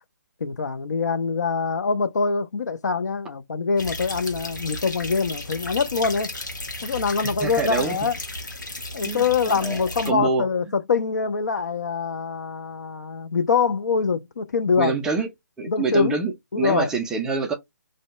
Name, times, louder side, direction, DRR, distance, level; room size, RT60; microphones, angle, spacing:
voice 1, 0.4-6.3 6.8-8.2 8.9-15.0 15.7-16.2 16.5-16.9, left 5 dB, 65° left, 0.4 m, -24 dB
sound 1, 3.8-10.1, left 1 dB, 85° left, 1.1 m, -34 dB
voice 2, 7.4-8.0 9.0-9.8 10.1-10.5 14.8-15.3 15.6-17.5, right 4 dB, 5° right, 0.3 m, -26 dB
2.6 x 2.1 x 3.4 m
figure-of-eight pair, 145°, 10 cm